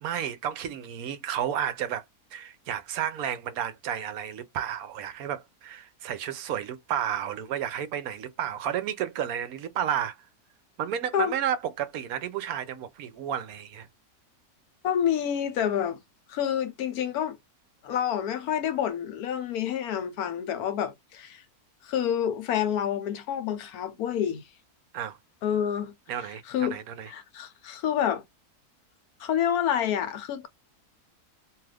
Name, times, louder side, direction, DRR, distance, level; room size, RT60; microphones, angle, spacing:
voice 1, 0.0-2.0 2.3-10.2 10.8-13.9 24.9-25.2 26.1-27.1, right 10 dB, 75° right, 1.0 m, -32 dB
voice 2, 14.8-16.0 16.3-17.4 17.8-21.4 21.8-24.4 25.4-25.9 26.2-26.8 27.1-28.2 29.2-30.5, left 9 dB, 80° left, 1.1 m, -28 dB
2.8 x 2.4 x 3.3 m
omnidirectional pair, 1.6 m